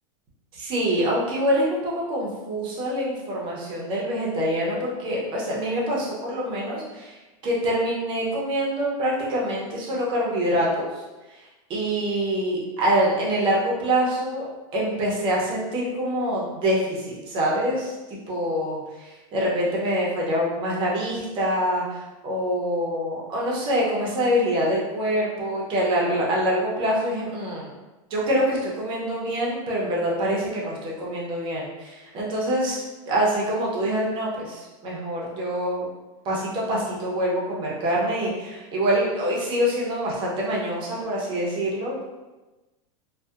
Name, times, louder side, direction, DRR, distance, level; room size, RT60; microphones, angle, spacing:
voice 1, 0.5-7.2 7.4-10.9 11.7-14.4 14.7-27.7 28.1-32.8 33.1-35.9 36.2-42.0, equal, 30° right, -4 dB, 0.6 m, -25 dB
2.6 x 2.1 x 2.3 m, 1.1 s
supercardioid pair, 150°, 17 cm